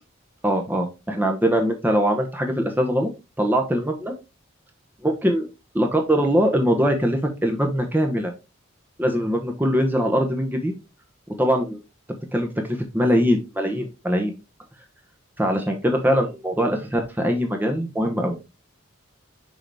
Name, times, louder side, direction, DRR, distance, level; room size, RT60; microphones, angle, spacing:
voice 1, 0.4-3.1 3.4-4.1 5.0-5.5 5.7-8.3 9.0-10.7 11.4-11.8 12.3-14.3 15.4-18.4, equal, 10° right, 3 dB, 0.8 m, -22 dB
6.3 x 4.9 x 3.3 m, 0.27 s
head